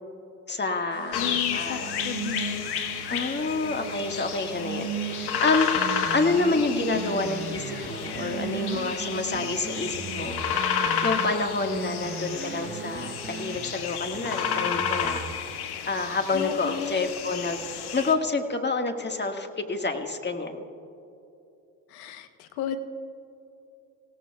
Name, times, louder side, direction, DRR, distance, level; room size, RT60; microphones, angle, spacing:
voice 1, 0.5-2.0 3.1-5.7 6.1-10.4 11.0-15.2 15.9-17.6 17.9-20.6, left 3 dB, 25° left, 4 dB, 1.7 m, -28 dB
sound 1, 0.9-13.2, right 8 dB, 85° right, 2.0 m, -39 dB
sound 2, 1.1-18.1, left 7 dB, 55° left, 1.6 m, -31 dB
voice 2, 1.2-2.7 6.7-7.2 16.3-17.0 21.9-22.8, left 9 dB, 85° left, 10 dB, 1.1 m, -34 dB
sound 3, 5.7-6.5 6.9-8.9 9.3-11.3 11.7-13.7 14.1-15.3, right 3 dB, 20° right, 0.9 m, -39 dB
28.0 x 17.0 x 2.3 m, 2.8 s
hypercardioid pair, 60°, 46 cm